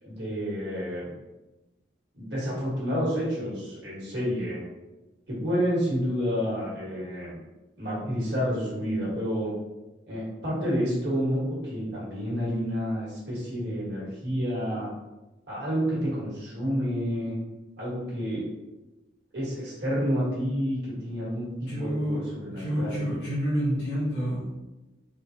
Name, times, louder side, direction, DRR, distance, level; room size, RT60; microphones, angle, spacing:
voice 1, 0.0-1.1 2.1-4.6 5.3-7.4 7.8-9.5 10.1-14.9 15.5-17.4 17.8-18.4 19.3-23.1, equal, 60° right, -6 dB, 1.3 m, -29 dB
voice 2, 21.7-22.3 22.6-24.5, equal, 70° left, -9 dB, 0.9 m, -28 dB
3.7 x 2.1 x 2.7 m, 1.1 s
head